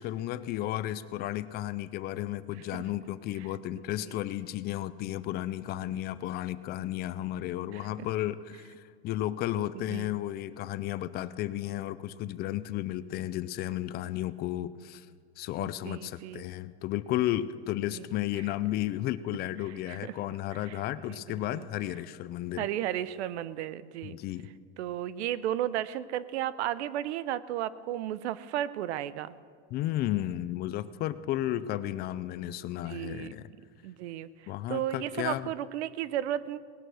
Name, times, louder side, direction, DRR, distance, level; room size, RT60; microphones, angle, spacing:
voice 1, 0.0-15.1 15.4-22.7 24.0-24.5 29.7-33.5 34.5-35.5, left 14 dB, 30° left, 15 dB, 0.4 m, -33 dB
voice 2, 15.6-16.5 17.9-18.0 19.9-20.1 20.7-20.8 21.1-21.7 22.6-24.2 24.8-29.3 32.8-33.4 33.8-34.3 34.7-36.6, right 12 dB, 85° right, 17 dB, 0.7 m, -34 dB
18.5 x 11.5 x 6.3 m, 2.1 s
supercardioid pair, 145°, 33 cm